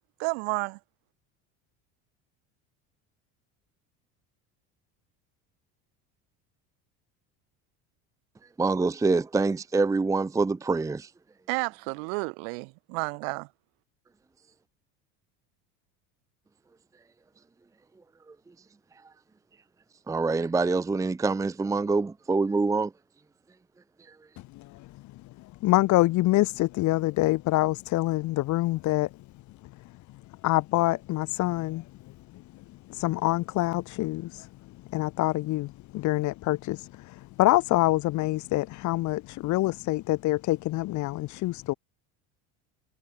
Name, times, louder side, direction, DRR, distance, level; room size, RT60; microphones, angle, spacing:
voice 1, 0.2-0.8 11.5-13.5, right 40 dB or more, 80° right, 7.6 m, -31 dB
voice 2, 8.6-11.1 18.3-18.4 20.1-22.9, right 3 dB, 10° right, 0.7 m, -25 dB
voice 3, 24.5-24.9 25.6-29.1 30.4-32.4 32.9-34.5 34.9-41.7, left 18 dB, 60° left, 2.9 m, -26 dB
cardioid pair, 125°, 33 cm